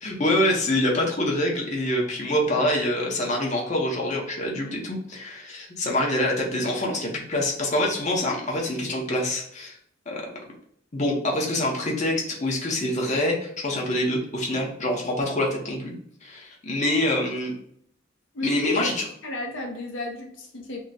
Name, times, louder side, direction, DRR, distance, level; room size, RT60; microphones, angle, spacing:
voice 1, 0.0-9.8 10.1-10.3 10.9-15.9 16.2-17.5 18.4-19.1, left 1 dB, 35° left, -1 dB, 0.7 m, -25 dB
voice 2, 18.3-18.9 19.2-20.8, left 2 dB, 70° left, 2 dB, 0.6 m, -32 dB
3.7 x 2.1 x 4.0 m, 0.66 s
head